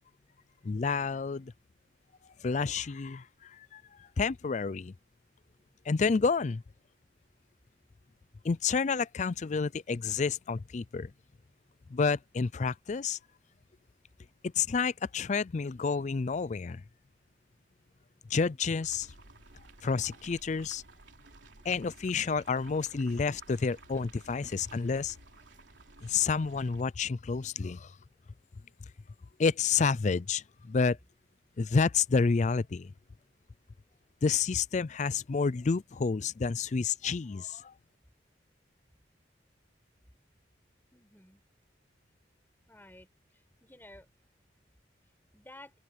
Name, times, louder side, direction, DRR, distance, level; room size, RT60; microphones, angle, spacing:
voice 1, 0.6-1.5 2.4-3.8 4.2-4.9 5.9-6.6 8.4-11.1 11.9-13.2 14.4-16.8 18.3-19.1 19.8-20.8 21.6-25.2 26.0-27.9 29.4-31.0 31.6-32.9 34.2-37.7, left 5 dB, 40° left, 0.4 m, -29 dB
sound 1, 18.8-26.8, right 3 dB, 80° right, 3.2 m, -55 dB
voice 2, 40.9-41.4 42.7-44.1 45.3-45.7, left 1 dB, 10° left, 5.7 m, -53 dB
open air
head